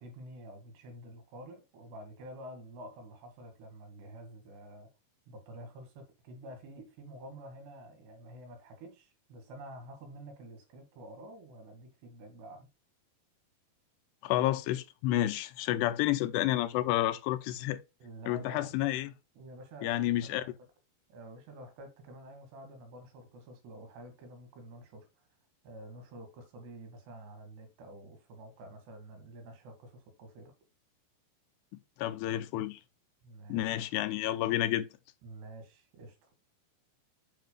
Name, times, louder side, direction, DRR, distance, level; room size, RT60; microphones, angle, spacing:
voice 1, 0.0-4.9 5.3-12.7 18.0-18.7 19.4-20.5 21.1-25.1 25.6-30.5 33.2-33.7 35.2-36.3, right 1 dB, 80° right, 4.0 m, -49 dB
voice 2, 14.2-17.8 18.3-19.1 19.8-20.4 32.0-32.8 33.5-34.9, left 14 dB, 85° left, 2.6 m, -30 dB
9.1 x 5.8 x 2.2 m
omnidirectional pair, 4.8 m